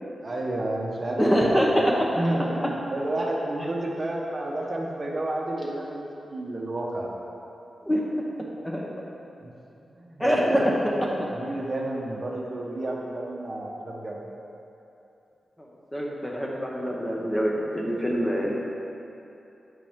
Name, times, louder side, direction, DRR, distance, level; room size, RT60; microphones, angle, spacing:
voice 1, 0.2-7.1 9.4-9.5 10.0-10.7 11.0-14.3, right 1 dB, 35° right, -2 dB, 1.1 m, -31 dB
voice 2, 1.2-2.0 7.8-8.0 8.6-8.9 10.2-10.7 11.2-11.3 15.6-18.6, equal, 10° left, -2 dB, 0.9 m, -24 dB
8.9 x 8.1 x 3.6 m, 2.9 s
wide cardioid pair, 135°, 0 cm